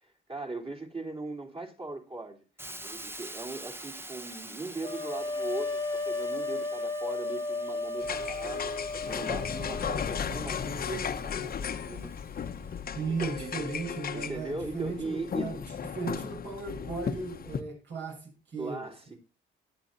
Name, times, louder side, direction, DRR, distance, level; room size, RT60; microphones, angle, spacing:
voice 1, 0.0-2.4 2.8-8.7 9.0-12.1 12.8-13.5 14.1-15.6 18.6-19.2, right 3 dB, 30° right, 3.7 m, -39 dB
Hiss, 2.6-12.5, right 1 dB, 10° right, 1.2 m, -47 dB
sound 1, 4.8-10.7, left 3 dB, 20° left, 1.0 m, -34 dB
sound 2, 8.0-17.6, left 7 dB, 50° left, 1.1 m, -35 dB
voice 2, 12.9-15.6 15.9-18.9, right 4 dB, 65° right, 7.5 m, -36 dB
18.5 x 9.9 x 2.7 m
cardioid pair, 90°, 20 cm